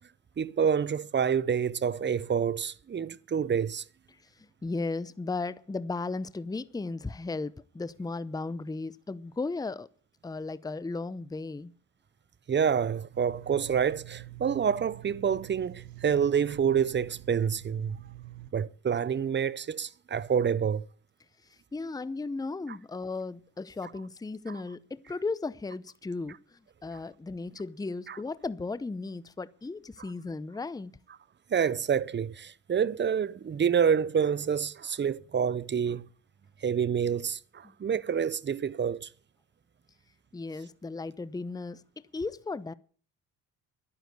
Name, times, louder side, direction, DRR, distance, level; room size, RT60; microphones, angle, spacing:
voice 1, 0.4-3.8 12.5-18.0 18.5-20.9 28.1-28.2 31.5-36.1 36.6-39.1, right 7 dB, 30° right, 0.7 m, -28 dB
voice 2, 4.4-9.9 10.2-11.7 21.5-31.0 40.3-42.7, left 3 dB, 10° left, 0.7 m, -36 dB
sound 1, 13.1-18.5, right 15 dB, 70° right, 1.1 m, -46 dB
11.5 x 9.8 x 8.1 m
supercardioid pair, 70°, 37 cm